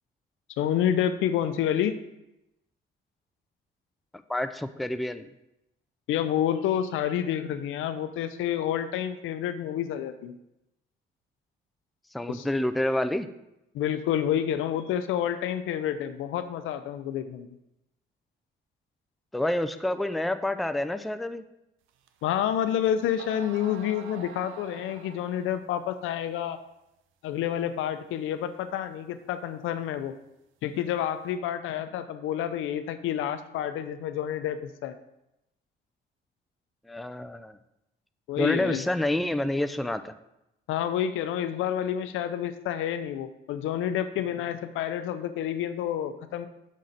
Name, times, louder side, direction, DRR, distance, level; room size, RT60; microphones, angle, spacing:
voice 1, 0.6-1.9 6.1-10.4 12.3-12.5 13.7-17.5 22.2-26.6 27.2-30.1 30.6-34.9 38.3-38.8 40.7-46.5, left 10 dB, 85° left, 10 dB, 0.5 m, -29 dB
voice 2, 4.3-5.3 12.1-13.3 19.3-21.4 36.9-37.6 38.4-40.1, left 1 dB, ahead, 10 dB, 0.3 m, -28 dB
sound 1, 22.1-22.2 22.8-22.9 23.2-25.6, right 8 dB, 90° right, 0.5 m, -45 dB
6.2 x 3.9 x 5.6 m, 0.87 s
cardioid pair, 90°, 20 cm